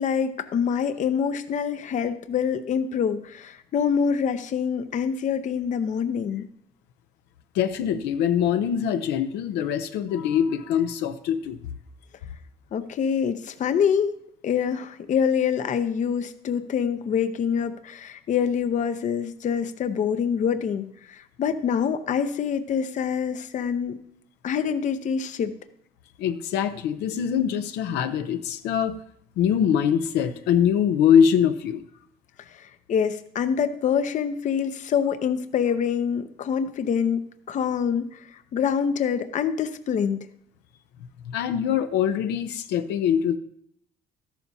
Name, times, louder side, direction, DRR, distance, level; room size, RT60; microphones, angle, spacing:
voice 1, 0.0-6.5 12.7-14.1 14.4-24.0 24.4-25.5 32.5-40.3, left 7 dB, 45° left, 10 dB, 0.7 m, -25 dB
voice 2, 7.5-11.6 26.2-29.0 29.4-31.8 41.2-43.4, left 8 dB, 85° left, 8 dB, 0.7 m, -23 dB
13.5 x 11.5 x 2.7 m, 0.71 s
cardioid pair, 110°, 17 cm